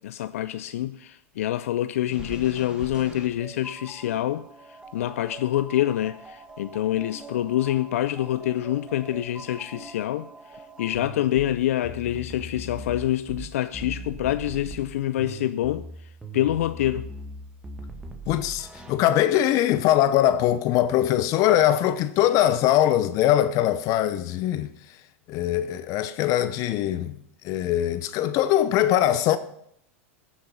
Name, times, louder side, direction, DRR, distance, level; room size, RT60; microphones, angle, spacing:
voice 1, 0.0-17.1, left 13 dB, 80° left, 0.4 m, -26 dB
sound 1, 2.1-18.9, right 1 dB, 10° right, 1.7 m, -41 dB
voice 2, 18.3-24.7 25.3-27.1 27.4-29.4, left 12 dB, 50° left, 0.7 m, -22 dB
13.5 x 7.2 x 5.6 m
hypercardioid pair, 110°, 8 cm